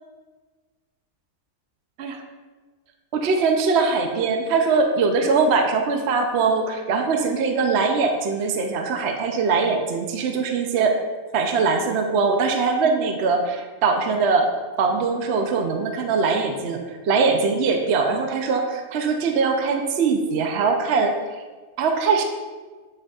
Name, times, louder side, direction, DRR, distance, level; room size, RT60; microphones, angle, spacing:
voice 1, 3.1-11.0 11.3-14.5 14.8-21.2 21.8-22.2, right 4 dB, 60° right, 4 dB, 0.7 m, -21 dB
8.2 x 6.2 x 2.3 m, 1.3 s
omnidirectional pair, 1.7 m